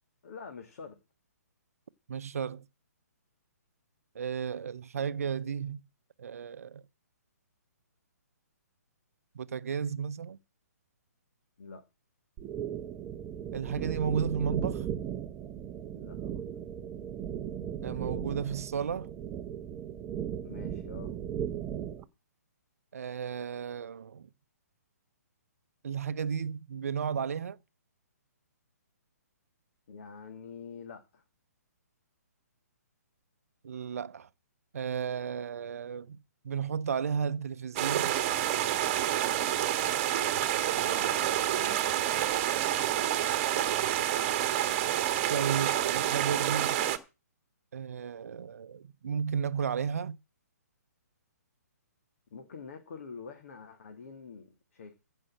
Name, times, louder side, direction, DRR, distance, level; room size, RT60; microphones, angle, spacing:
voice 1, 0.2-1.0 11.6-11.8 15.9-16.4 20.4-21.1 29.9-31.2 40.7-42.3 52.3-54.9, left 5 dB, 55° left, 2.2 m, -46 dB
voice 2, 2.1-2.6 4.1-5.8 6.2-6.8 9.3-10.4 13.5-14.9 17.8-19.1 22.9-24.3 25.8-27.6 33.6-34.3 34.7-38.1 45.3-46.8 47.7-50.2, right 7 dB, 60° right, 0.7 m, -33 dB
sound 1, 12.4-22.0, right 9 dB, 20° right, 0.8 m, -37 dB
sound 2, 37.8-47.0, right 12 dB, 35° right, 1.4 m, -28 dB
15.0 x 5.5 x 7.5 m
figure-of-eight pair, 130°, 9 cm